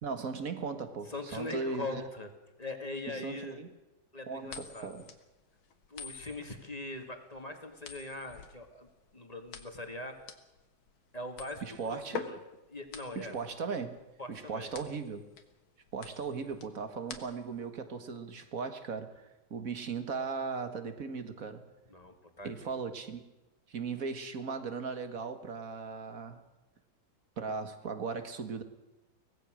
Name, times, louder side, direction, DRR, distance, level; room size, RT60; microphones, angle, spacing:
voice 1, 0.0-2.0 3.1-3.7 4.3-5.1 11.6-12.3 13.2-14.0 14.3-15.2 15.9-19.2 19.5-21.6 22.4-23.2 23.7-26.4 27.4-28.6, right 5 dB, 45° right, 2.0 m, -37 dB
voice 2, 1.1-2.3 2.6-3.6 4.1-4.9 5.9-10.2 11.1-12.4 12.7-13.4 14.2-14.7 21.9-22.8, left 2 dB, 20° left, 2.1 m, -41 dB
sound 1, 4.5-17.7, left 6 dB, 90° left, 2.3 m, -47 dB
24.0 x 18.0 x 6.4 m
omnidirectional pair, 2.1 m